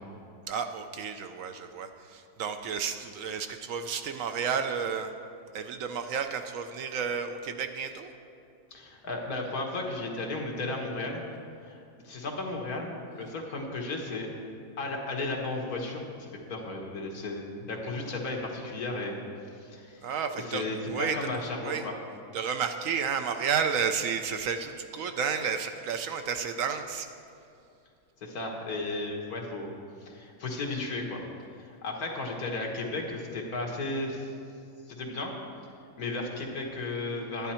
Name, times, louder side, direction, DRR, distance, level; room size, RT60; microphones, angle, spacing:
voice 1, 0.5-5.1 5.5-8.1 20.0-21.3 21.6-21.8 22.3-27.1, right 6 dB, 70° right, 7 dB, 0.9 m, -31 dB
voice 2, 8.7-11.2 11.6-14.3 14.8-19.2 19.6-20.1 20.3-21.9 28.2-29.7 30.0-31.2 31.6-34.3 34.9-35.3 36.0-37.5, left 2 dB, 75° left, 1 dB, 1.8 m, -34 dB
10.5 x 10.5 x 4.3 m, 2.6 s
omnidirectional pair, 1.6 m